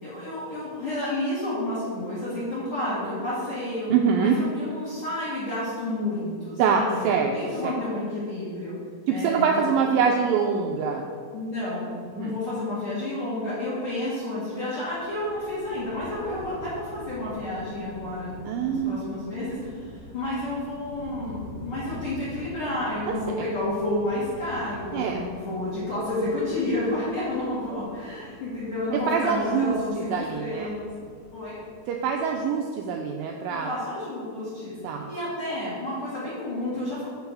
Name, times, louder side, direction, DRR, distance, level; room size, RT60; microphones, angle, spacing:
voice 1, 0.0-3.9 4.2-8.7 9.1-9.7 11.3-11.9 12.2-30.9 31.3-31.6 33.5-37.0, left 1 dB, 40° left, -11 dB, 2.3 m, -30 dB
voice 2, 3.9-4.4 6.6-7.3 7.6-7.7 9.1-11.1 12.1-12.3 18.5-19.0 23.1-23.5 24.9-25.3 29.1-30.7 31.9-33.7 34.8-35.1, right 6 dB, 85° right, 2 dB, 2.0 m, -25 dB
Thunder, 14.9-32.3, equal, 20° right, 1.2 m, -45 dB
6.8 x 4.8 x 6.6 m, 2.1 s
omnidirectional pair, 4.5 m